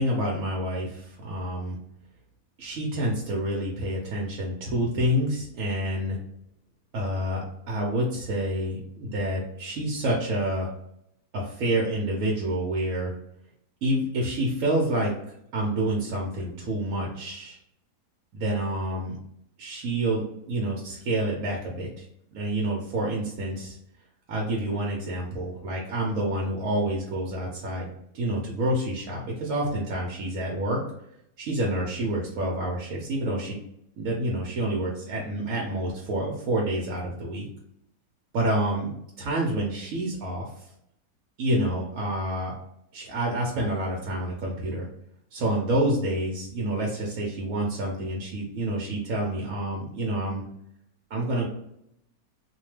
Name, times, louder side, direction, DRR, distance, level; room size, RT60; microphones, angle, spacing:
voice 1, 0.0-1.8 2.6-6.2 6.9-10.7 11.3-13.1 13.8-17.6 18.3-19.2 19.6-22.0 22.3-23.8 24.3-27.9 28.1-30.8 31.4-33.6 34.0-37.5 38.3-38.9 39.2-40.6 41.4-42.5 42.9-44.9 45.3-50.4 51.1-51.5, right 1 dB, 65° right, -3 dB, 1.0 m, -28 dB
2.8 x 2.1 x 3.1 m, 0.75 s
omnidirectional pair, 1.6 m